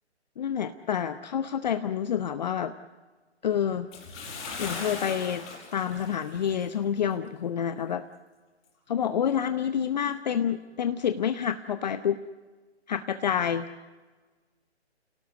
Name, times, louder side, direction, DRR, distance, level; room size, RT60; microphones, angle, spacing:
voice 1, 0.4-2.7 3.4-3.9 4.6-5.5 5.7-8.0 8.9-12.2 12.9-13.7, left 8 dB, 40° left, 10 dB, 0.8 m, -28 dB
Bathtub (filling or washing) / Splash splatter, 3.9-6.8 7.1-7.3 7.8-7.9, left 4 dB, 20° left, 5.0 m, -39 dB
29.5 x 18.0 x 8.1 m, 1.3 s
figure-of-eight pair, 145°, 34 cm